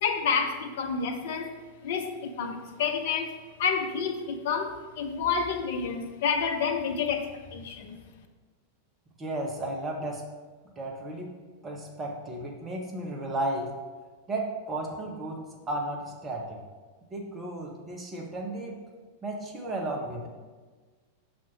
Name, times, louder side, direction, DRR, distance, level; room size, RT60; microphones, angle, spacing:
voice 1, 0.0-8.0, left 6 dB, 55° left, 6 dB, 0.7 m, -29 dB
voice 2, 9.2-10.2 10.8-11.3 11.6-13.7 14.3-15.4 15.7-16.6 17.1-18.8 19.2-20.3, right 1 dB, 20° right, 0 dB, 1.0 m, -34 dB
6.1 x 4.3 x 4.7 m, 1.4 s
figure-of-eight pair, 90°, 0 cm